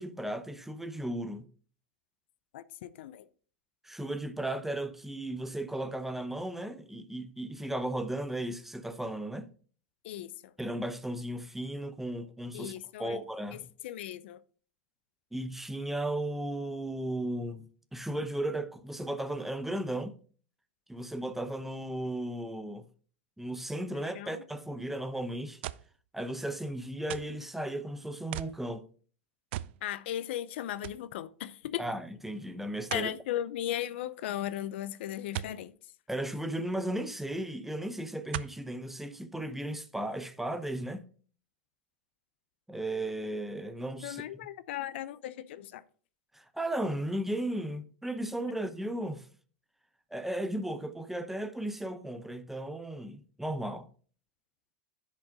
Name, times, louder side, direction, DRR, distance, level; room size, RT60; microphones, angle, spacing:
voice 1, 0.0-1.5 3.8-9.5 10.6-12.7 13.0-13.6 15.3-20.2 20.9-22.9 23.4-25.6 26.1-28.9 31.8-33.1 36.1-41.1 42.7-44.2 46.3-49.3 50.1-53.9, right 1 dB, 5° right, 0.7 m, -35 dB
voice 2, 2.5-3.3 10.0-10.5 12.5-13.2 13.8-14.4 23.9-24.4 29.8-31.8 32.9-35.7 44.0-45.8, left 12 dB, 70° left, 0.5 m, -37 dB
sound 1, 25.6-26.0 27.1-27.4 28.3-28.6 29.5-29.8 30.2-30.3 30.8-31.1 32.9-33.1 35.3-35.6 37.1-37.2 38.3-38.6 39.3-39.4, right 15 dB, 65° right, 0.4 m, -38 dB
10.0 x 5.2 x 3.7 m
hypercardioid pair, 105°, 6 cm